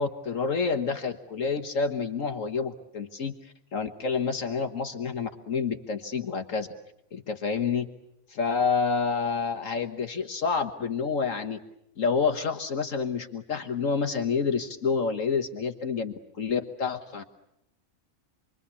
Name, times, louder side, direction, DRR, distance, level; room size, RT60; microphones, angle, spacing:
voice 1, 0.0-6.7 7.1-7.9 8.3-11.6 12.0-17.2, left 5 dB, 65° left, 6 dB, 1.8 m, -28 dB
28.0 x 22.5 x 8.4 m, 0.80 s
omnidirectional pair, 1.5 m